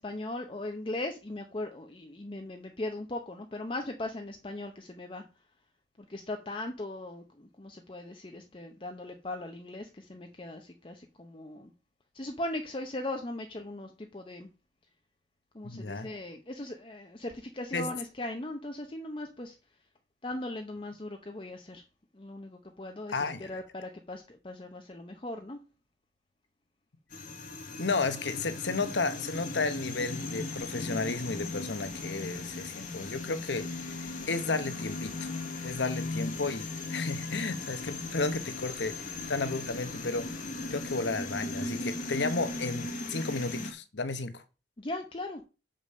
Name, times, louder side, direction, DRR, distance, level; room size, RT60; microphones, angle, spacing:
voice 1, 0.0-5.2 6.1-11.7 12.1-14.5 15.5-19.6 20.2-21.8 22.1-25.6 44.8-45.4, left 1 dB, 30° left, 0.7 m, -39 dB
voice 2, 15.6-16.1 17.7-17.9 23.1-23.5 27.8-35.3 35.6-40.3 40.7-44.4, left 3 dB, 80° left, 1.0 m, -33 dB
sound 1, 27.1-43.7, left 2 dB, 45° left, 1.2 m, -37 dB
6.8 x 5.1 x 5.5 m
head